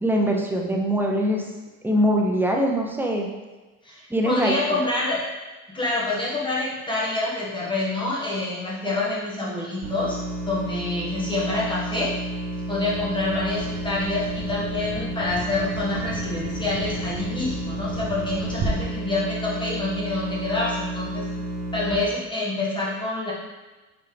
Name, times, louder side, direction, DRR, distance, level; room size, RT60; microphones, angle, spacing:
voice 1, 0.0-1.4 1.8-3.3 4.1-4.6, equal, 5° right, 0 dB, 0.7 m, -22 dB
voice 2, 3.8-5.2 5.7-10.2 10.5-12.1 12.7-21.3 21.7-23.3, left 2 dB, 15° left, -6 dB, 1.7 m, -27 dB
sound 1, 9.8-21.9, right 1 dB, 55° right, 2.1 m, -31 dB
Bird vocalization bird call bird song, 12.9-18.7, right 4 dB, 35° right, 1.0 m, -37 dB
7.0 x 4.5 x 3.4 m, 1.2 s
cardioid pair, 145°, 34 cm